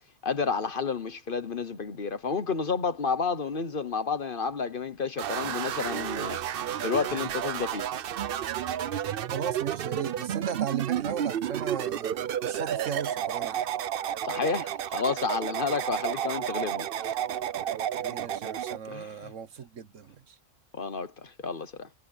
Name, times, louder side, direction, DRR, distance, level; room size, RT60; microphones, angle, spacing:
voice 1, 0.2-6.4 6.8-7.9 14.2-16.9 18.8-19.3 20.7-21.9, left 5 dB, 45° left, 1.1 m, -30 dB
sound 1, 5.2-18.8, right 10 dB, 55° right, 0.7 m, -31 dB
voice 2, 9.3-12.1 12.4-13.7 18.0-20.3, right 8 dB, 75° right, 1.4 m, -36 dB
omnidirectional pair, 1.3 m